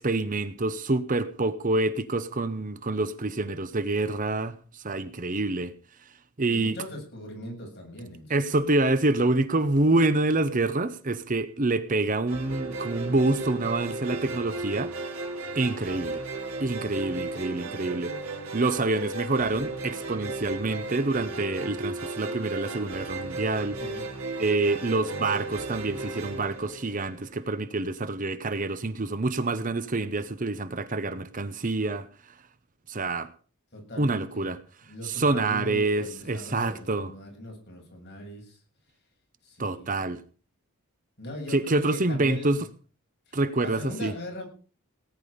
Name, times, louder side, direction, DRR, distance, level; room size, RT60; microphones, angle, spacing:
voice 1, 0.0-5.7 6.4-6.8 8.3-15.2 15.5-16.2 16.6-23.8 24.4-32.1 32.9-33.3 34.0-34.6 35.0-37.1 39.6-40.2 41.5-42.7 43.3-44.1, right 2 dB, 35° right, 0.9 m, -27 dB
voice 2, 6.5-8.6 23.8-24.0 33.7-34.5 34.9-38.6 39.4-40.1 41.2-42.6 43.3-44.5, left 1 dB, 50° left, 7.8 m, -40 dB
sound 1, 12.3-27.5, right 3 dB, 70° right, 3.4 m, -35 dB
18.5 x 10.5 x 5.2 m
head